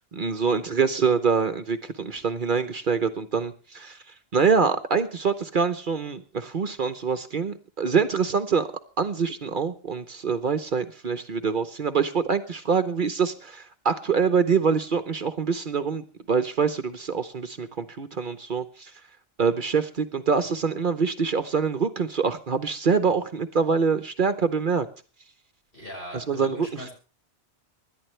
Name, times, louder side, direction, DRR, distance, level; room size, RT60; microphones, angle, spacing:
voice 1, 0.1-4.0 4.3-8.7 9.0-18.9 19.4-24.9 26.1-26.7, right 5 dB, 50° right, 10 dB, 1.0 m, -25 dB
voice 2, 25.7-26.9, equal, 55° left, 0 dB, 6.2 m, -40 dB
26.0 x 11.5 x 3.2 m, 0.38 s
omnidirectional pair, 1.1 m